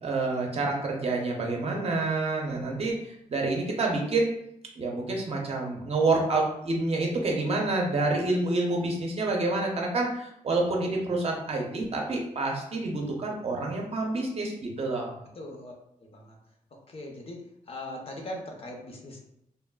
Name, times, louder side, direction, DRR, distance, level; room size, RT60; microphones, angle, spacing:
voice 1, 0.0-2.9 3.3-4.3 4.8-15.1, right 2 dB, 45° right, 0 dB, 0.6 m, -28 dB
voice 2, 15.4-15.7 16.1-16.3 16.9-17.4 17.7-19.2, left 1 dB, 40° left, 1 dB, 0.5 m, -39 dB
3.3 x 2.4 x 2.2 m, 0.78 s
wide cardioid pair, 155°, 14 cm